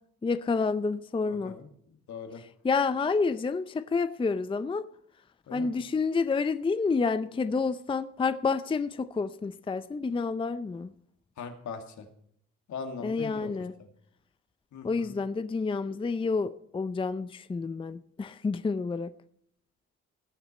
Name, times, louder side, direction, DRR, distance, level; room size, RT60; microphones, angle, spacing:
voice 1, 0.2-1.6 2.6-4.9 5.5-10.9 13.0-13.7 14.8-19.1, left 4 dB, 15° left, 0.5 m, -29 dB
voice 2, 1.2-1.7 2.1-2.4 5.5-5.8 11.4-12.1 12.7-13.5 14.7-15.1, left 5 dB, 70° left, 2.2 m, -40 dB
18.0 x 7.1 x 4.3 m
cardioid pair, 90°, 30 cm